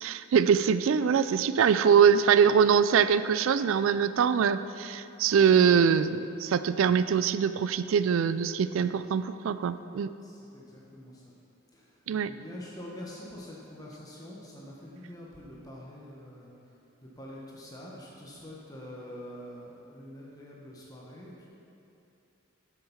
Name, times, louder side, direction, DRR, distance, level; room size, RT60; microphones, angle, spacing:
voice 1, 0.0-10.1 12.1-12.3, right 7 dB, 65° right, 13 dB, 0.3 m, -23 dB
voice 2, 10.2-11.3 11.7-12.0 12.2-16.7 17.0-21.5, left 1 dB, 15° left, -4 dB, 1.0 m, -45 dB
7.5 x 7.0 x 5.7 m, 2.8 s
head